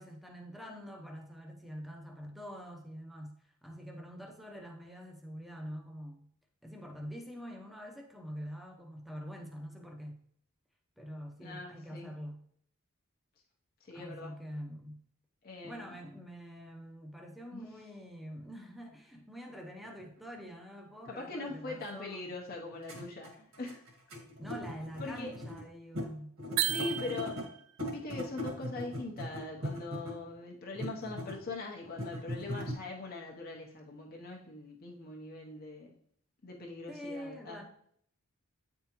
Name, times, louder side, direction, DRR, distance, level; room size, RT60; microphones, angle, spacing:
voice 1, 0.0-3.4 3.6-6.3 6.6-10.2 11.0-12.4 13.9-15.0 15.6-22.3 24.4-26.4 36.9-37.6, equal, ahead, 1 dB, 0.7 m, -45 dB
voice 2, 11.4-12.1 13.9-14.3 15.4-15.9 17.5-17.6 21.1-23.8 25.0-25.3 26.7-27.4 27.9-35.9 36.4-37.6, left 3 dB, 45° left, -2 dB, 0.8 m, -42 dB
sound 1, 20.0-20.1 21.1-21.2 22.5-22.6 22.8-25.6 25.9-26.1 26.4-27.5 27.8-30.3 30.7-31.5 31.8-32.7, left 1 dB, 65° right, 1.6 m, -39 dB
sound 2, 26.6-27.7, right 13 dB, 85° right, 0.3 m, -33 dB
9.1 x 3.6 x 3.0 m, 0.65 s
head